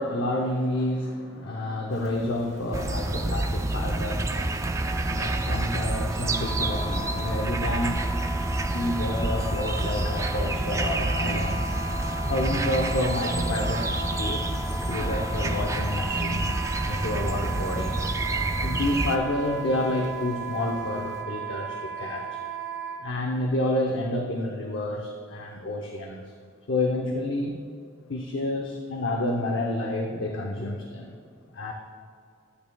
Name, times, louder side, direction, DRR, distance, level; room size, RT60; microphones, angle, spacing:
voice 1, 0.0-8.2 8.7-11.6 12.3-18.0 18.6-22.4 23.0-26.2 26.7-27.6 28.1-31.1 31.5-31.7, left 1 dB, 70° left, 0 dB, 0.8 m, -29 dB
Rain, 1.9-21.2, equal, 35° right, 0.8 m, -47 dB
sound 1, 2.7-19.2, right 2 dB, 15° right, 0.3 m, -28 dB
Wind instrument woodwind instrument, 6.2-23.0, right 2 dB, 15° left, 1.6 m, -36 dB
12.0 x 9.8 x 2.3 m, 2.5 s
head